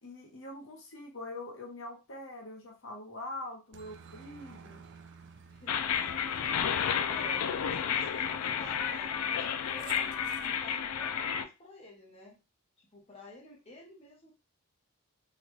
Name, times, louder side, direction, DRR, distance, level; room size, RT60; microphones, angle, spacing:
voice 1, 0.0-4.8, left 2 dB, 60° left, 1 dB, 1.0 m, -43 dB
Aircraft, 3.7-10.6, right 6 dB, 55° right, 0.4 m, -54 dB
voice 2, 5.5-7.4 7.7-12.4 12.8-14.3, left 2 dB, 30° left, -2 dB, 0.8 m, -51 dB
sound 1, 5.7-11.5, left 8 dB, 85° left, 0.4 m, -31 dB
3.9 x 2.3 x 3.1 m, 0.27 s
head